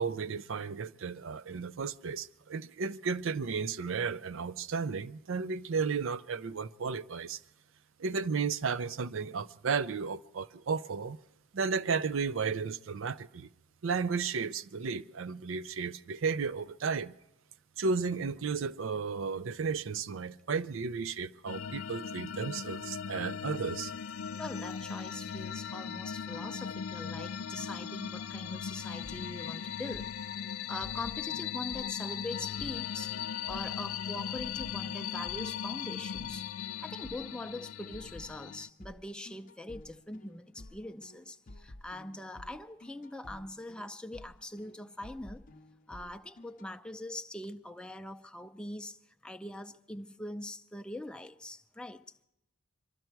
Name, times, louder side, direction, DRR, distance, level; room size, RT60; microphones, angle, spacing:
voice 1, 0.0-7.4 8.0-11.2 11.5-13.5 13.8-17.1 17.8-23.9, right 5 dB, 70° right, 0.5 m, -33 dB
sound 1, 21.5-38.7, left 8 dB, 80° left, 0.5 m, -38 dB
voice 2, 24.4-30.1 30.7-33.2 33.5-36.5 36.8-45.4 45.9-52.0, left 1 dB, 5° left, 0.5 m, -42 dB
sound 2, 29.0-46.7, left 1 dB, 40° left, 0.6 m, -53 dB
23.5 x 13.5 x 4.6 m
head